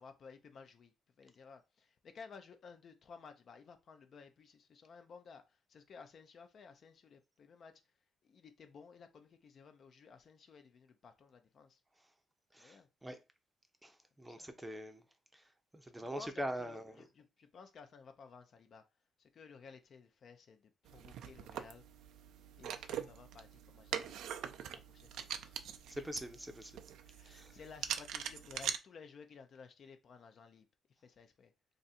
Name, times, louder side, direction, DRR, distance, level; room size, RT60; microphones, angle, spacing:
voice 1, 0.0-7.9 8.2-11.8 12.6-12.9 14.2-14.5 16.0-18.8 19.2-21.8 22.6-24.2 24.7-25.7 27.1-31.5, left 5 dB, 55° left, 0.5 m, -56 dB
voice 2, 12.5-13.2 13.8-15.0 15.3-17.0 25.9-26.8 27.2-27.5, equal, 10° right, 0.6 m, -44 dB
sound 1, 20.9-28.8, right 9 dB, 85° right, 0.3 m, -43 dB
2.5 x 2.5 x 4.1 m
cardioid pair, 90°, 0 cm